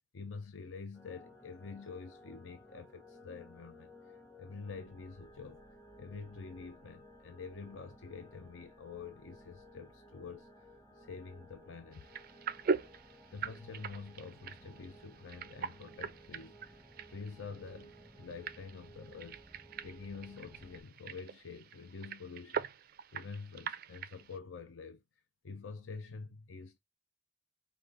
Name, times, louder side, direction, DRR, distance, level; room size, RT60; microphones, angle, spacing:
voice 1, 0.1-5.6 6.0-12.1 13.3-19.4 19.8-22.7 23.1-25.0 25.4-26.8, left 4 dB, 80° left, 0.6 m, -47 dB
sound 1, 0.9-20.8, equal, 15° left, 0.9 m, -57 dB
sound 2, 11.9-24.4, right 5 dB, 50° right, 0.3 m, -42 dB
5.1 x 2.4 x 3.8 m
head